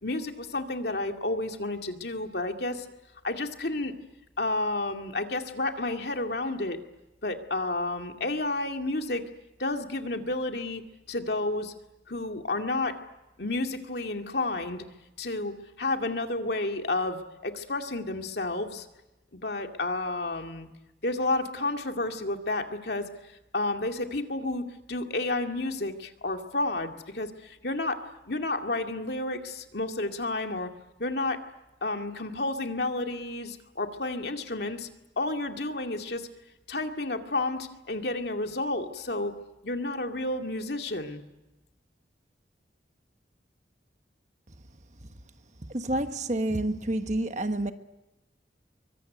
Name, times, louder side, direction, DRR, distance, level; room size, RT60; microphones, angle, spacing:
voice 1, 0.0-2.9 3.2-3.9 4.4-6.8 7.2-9.2 9.6-10.8 11.1-11.7 12.1-13.0 13.4-14.8 15.2-18.9 19.3-20.7 21.0-23.1 23.5-28.0 28.3-30.7 31.0-31.4 31.8-34.9 35.2-36.3 36.7-39.3 39.6-41.2, left 2 dB, 65° left, 2.3 m, -31 dB
voice 2, 45.7-47.7, right 1 dB, 40° right, 1.3 m, -28 dB
24.0 x 23.0 x 9.4 m
head